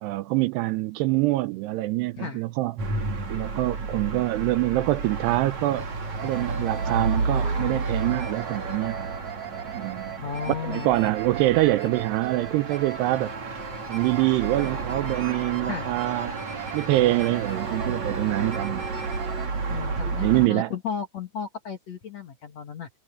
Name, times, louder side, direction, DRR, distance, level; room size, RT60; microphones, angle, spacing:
voice 1, 0.0-2.8 3.3-5.9 6.2-9.1 9.7-10.1 10.6-13.3 13.9-16.4 16.7-18.9 20.2-20.7, right 18 dB, 80° right, 2.6 m, -25 dB
sound 1, 2.8-20.5, right 3 dB, 40° right, 5.1 m, -32 dB
sound 2, 4.9-5.0 5.2-5.3 5.7-5.8 6.2-19.5, right 5 dB, 25° right, 5.6 m, -39 dB
voice 2, 10.2-10.9 15.6-15.9 19.7-22.9, left 7 dB, 55° left, 2.1 m, -34 dB
omnidirectional pair, 5.1 m